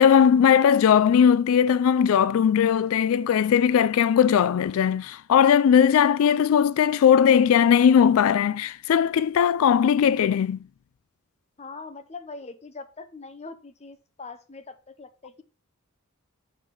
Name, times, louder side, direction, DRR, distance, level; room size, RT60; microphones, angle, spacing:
voice 1, 0.0-10.6, left 8 dB, 70° left, 0.3 m, -19 dB
voice 2, 11.6-15.4, left 4 dB, 30° left, 0.8 m, -42 dB
6.6 x 4.8 x 5.2 m
head